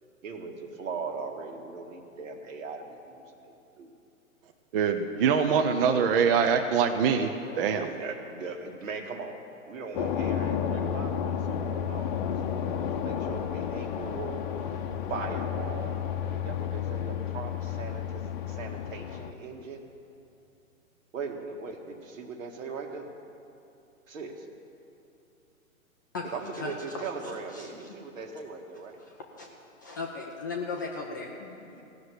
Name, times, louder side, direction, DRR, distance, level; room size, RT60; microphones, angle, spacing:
voice 1, 0.2-3.9 5.4-6.3 7.8-9.4 9.7-12.2 12.5-14.8 15.1-19.8 21.1-23.1 24.1-24.5 26.2-29.0 31.7-31.8, right 4 dB, 70° right, 4 dB, 1.8 m, -39 dB
voice 2, 4.7-7.3 7.6-7.9, right 6 dB, 40° right, 5 dB, 0.8 m, -24 dB
sound 1, 9.9-19.3, left 8 dB, 35° left, 0.8 m, -31 dB
voice 3, 26.5-27.0 27.5-28.0 29.0-29.5 29.8-31.8, left 4 dB, 15° left, 0 dB, 0.4 m, -37 dB
16.0 x 6.7 x 9.7 m, 2.7 s
hypercardioid pair, 135°, 42 cm